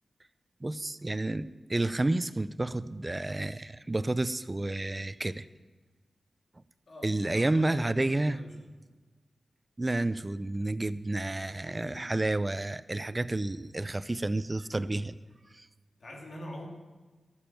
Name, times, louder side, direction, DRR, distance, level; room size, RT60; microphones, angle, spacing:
voice 1, 0.6-5.5 7.0-8.4 9.8-15.1 15.5-15.7, right 2 dB, 30° right, 16 dB, 0.6 m, -30 dB
voice 2, 6.9-8.7 11.6-12.1 14.8-15.0 16.0-16.7, left 1 dB, 60° left, -1 dB, 3.0 m, -45 dB
12.5 x 7.2 x 7.6 m, 1.3 s
cardioid pair, 45°, 0 cm